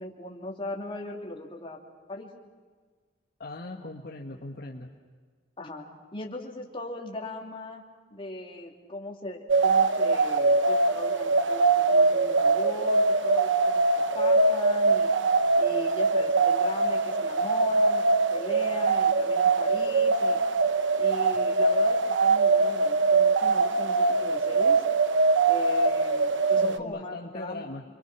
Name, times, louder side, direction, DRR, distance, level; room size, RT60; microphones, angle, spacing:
voice 1, 0.0-1.8 2.1-2.3 5.6-7.8 8.1-15.1 15.6-20.4 21.0-24.8 25.4-27.6, left 2 dB, 30° left, 0 dB, 3.0 m, -38 dB
voice 2, 3.4-4.9 26.6-27.8, left 2 dB, 55° left, 1 dB, 1.6 m, -39 dB
sound 1, 9.5-26.8, right 3 dB, 90° right, 0.9 m, -23 dB
28.5 x 23.5 x 6.2 m, 1.5 s
head